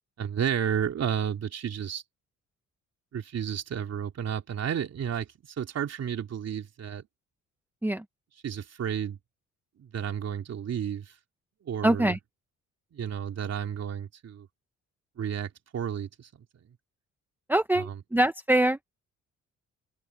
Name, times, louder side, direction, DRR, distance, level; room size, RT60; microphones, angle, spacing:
voice 1, 0.2-2.0 3.1-7.1 8.4-9.2 9.8-11.1 11.6-12.1 12.9-14.5 15.2-16.4 17.8-17.9, right 8 dB, 55° right, 3.2 m, -32 dB
voice 2, 11.8-12.2 17.5-19.0, right 1 dB, 5° right, 1.0 m, -24 dB
cardioid pair, 90°, 30 cm